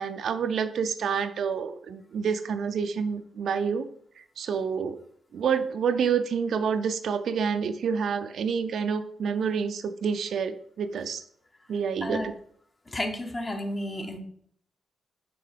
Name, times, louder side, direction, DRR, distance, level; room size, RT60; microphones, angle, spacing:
voice 1, 0.0-3.9 4.2-5.0 5.3-11.2 11.7-12.3, right 6 dB, 70° right, 10 dB, 0.4 m, -28 dB
voice 2, 12.9-14.2, left 1 dB, 25° left, 5 dB, 0.8 m, -31 dB
5.8 x 3.7 x 5.0 m, 0.62 s
wide cardioid pair, 145°, 0 cm